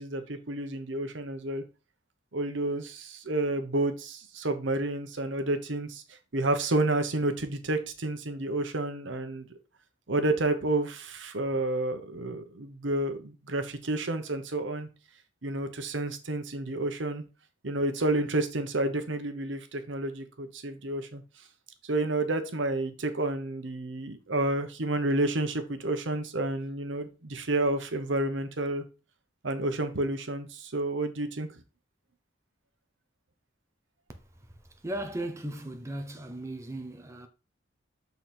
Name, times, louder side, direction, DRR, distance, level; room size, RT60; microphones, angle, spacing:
voice 1, 0.0-1.6 2.3-9.5 10.1-14.9 15.4-17.2 17.6-21.2 21.8-28.8 29.4-31.5, right 2 dB, 75° right, 1.0 m, -30 dB
voice 2, 34.1-37.3, right 1 dB, 15° right, 0.7 m, -37 dB
7.0 x 4.0 x 4.4 m
head